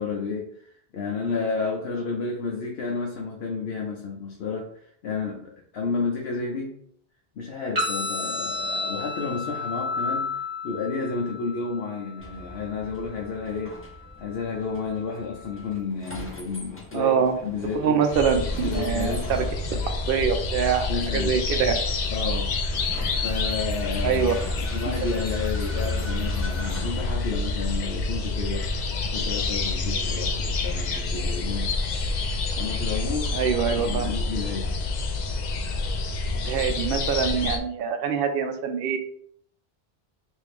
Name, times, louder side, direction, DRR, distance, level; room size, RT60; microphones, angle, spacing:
voice 1, 0.0-6.8 7.3-10.3 10.6-13.8 14.2-17.1 17.4-18.0 18.6-19.3 20.9-21.4 22.1-22.6 23.2-31.8 32.6-33.3 33.8-34.7, left 4 dB, 85° left, 0 dB, 0.9 m, -31 dB
sound 1, 7.8-15.7, left 3 dB, 40° right, 0.9 m, -33 dB
Vehicle, 12.2-30.3, left 2 dB, 15° left, 0.6 m, -43 dB
voice 2, 16.9-17.3 17.7-19.4 20.1-21.7 24.0-24.3 33.3-34.1 36.5-39.0, right 7 dB, 65° right, 6 dB, 0.7 m, -24 dB
sound 2, 18.1-37.6, left 3 dB, 55° left, 0.5 m, -28 dB
3.5 x 2.6 x 3.4 m, 0.63 s
omnidirectional pair, 1.0 m